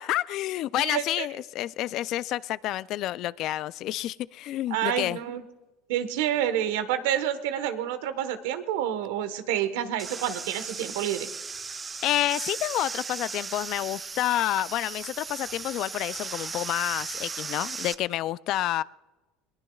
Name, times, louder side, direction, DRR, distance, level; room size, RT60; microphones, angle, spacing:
voice 1, 0.0-5.2 12.0-18.8, left 14 dB, 55° left, 18 dB, 0.4 m, -29 dB
voice 2, 0.8-1.3 4.7-5.4 5.9-11.3, right 10 dB, 80° right, 10 dB, 1.2 m, -28 dB
sound 1, 10.0-17.9, right 5 dB, 25° right, 0.6 m, -37 dB
21.0 x 19.5 x 2.3 m, 1.1 s
supercardioid pair, 95°, 0 cm